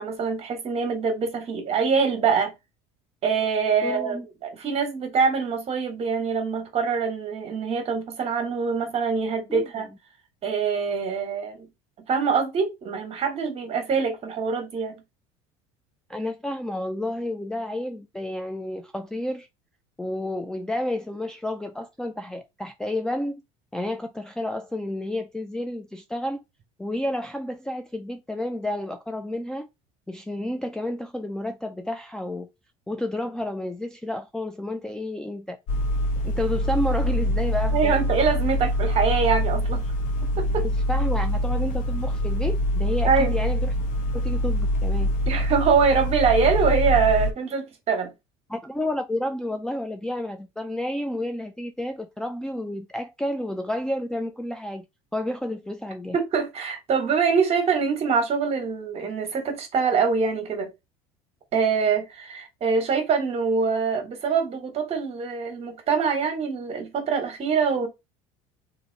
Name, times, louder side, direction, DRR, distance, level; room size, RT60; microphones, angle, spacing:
voice 1, 0.0-2.5 3.2-9.9 10.4-11.7 12.1-14.9 37.7-39.9 40.4-40.6 43.0-43.3 45.3-48.1 56.1-60.7 61.5-67.9, right 5 dB, 40° right, 1.3 m, -24 dB
voice 2, 3.8-4.3 9.5-10.0 16.1-19.5 20.0-23.4 23.7-26.4 26.8-29.7 30.1-32.5 32.9-35.6 36.2-38.0 40.6-43.7 44.1-45.1 48.5-54.8 55.1-56.2, left 1 dB, 5° left, 0.3 m, -30 dB
sound 1, 35.7-47.3, equal, 60° left, 1.0 m, -24 dB
2.8 x 2.6 x 3.8 m
supercardioid pair, 100°, 15 cm